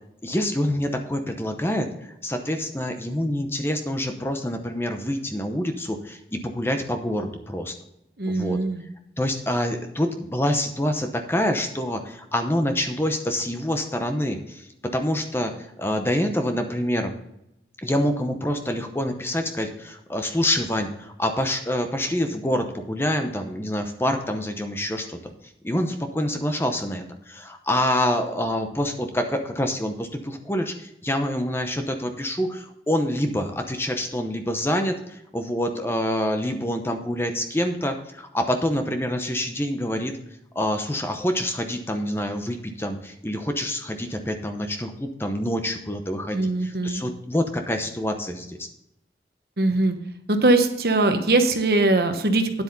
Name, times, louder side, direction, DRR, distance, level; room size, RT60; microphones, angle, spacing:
voice 1, 0.2-7.7 8.3-8.6 9.2-17.1 17.8-25.3 25.6-40.1 40.5-48.7, left 1 dB, 15° left, 5 dB, 0.8 m, -26 dB
voice 2, 8.2-8.8 46.3-47.0 49.6-49.9 50.3-52.6, right 2 dB, 60° right, 6 dB, 1.1 m, -21 dB
9.8 x 8.2 x 4.0 m, 0.81 s
head